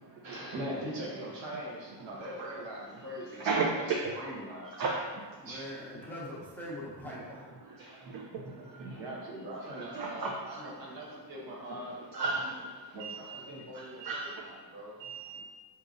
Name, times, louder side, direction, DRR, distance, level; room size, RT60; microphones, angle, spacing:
voice 1, 0.2-4.8 5.4-5.7 8.9-12.2 12.8-15.4, right 1 dB, 85° right, -3 dB, 1.1 m, -41 dB
voice 2, 3.4-4.1 4.8-5.2 7.7-9.0 9.6-10.6 11.7-11.8 12.1-12.6 13.7-14.3, right 3 dB, 55° right, -3 dB, 0.5 m, -34 dB
voice 3, 5.4-7.6, equal, 5° left, -7 dB, 0.7 m, -42 dB
5.2 x 2.9 x 2.5 m, 1.5 s
wide cardioid pair, 140°, 44 cm